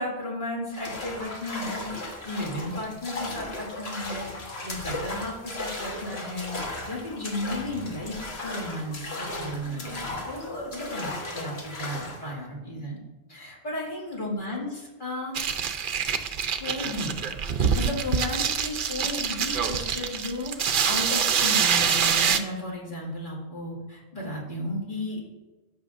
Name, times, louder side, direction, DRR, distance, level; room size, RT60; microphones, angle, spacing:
voice 1, 0.0-13.0 13.3-14.7 15.0-15.4 16.6-17.2 17.6-25.2, left 1 dB, 50° left, -5 dB, 2.3 m, -34 dB
sound 1, 0.7-12.3, left 2 dB, 65° left, 1.6 m, -36 dB
sound 2, 15.3-22.4, right 7 dB, 60° right, 0.7 m, -25 dB
14.5 x 6.0 x 2.5 m, 1.2 s
omnidirectional pair, 1.1 m